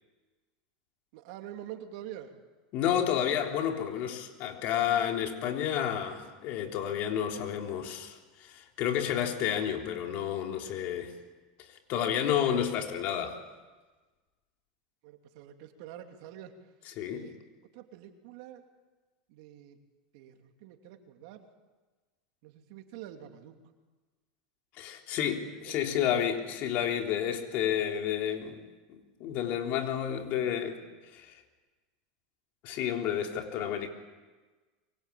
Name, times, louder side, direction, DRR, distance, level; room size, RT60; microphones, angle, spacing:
voice 1, 1.1-2.3 15.0-16.5 17.1-17.4 17.7-18.6 19.3-19.8 20.1-21.4 22.4-23.5 25.2-25.8, right 11 dB, 65° right, 5 dB, 2.9 m, -46 dB
voice 2, 2.7-11.1 11.6-13.4 16.9-17.3 24.8-28.6 28.9-30.8 31.1-31.4 32.6-33.9, left 9 dB, 55° left, 3 dB, 3.6 m, -30 dB
25.0 x 23.5 x 8.6 m, 1.3 s
supercardioid pair, 115°, 3 cm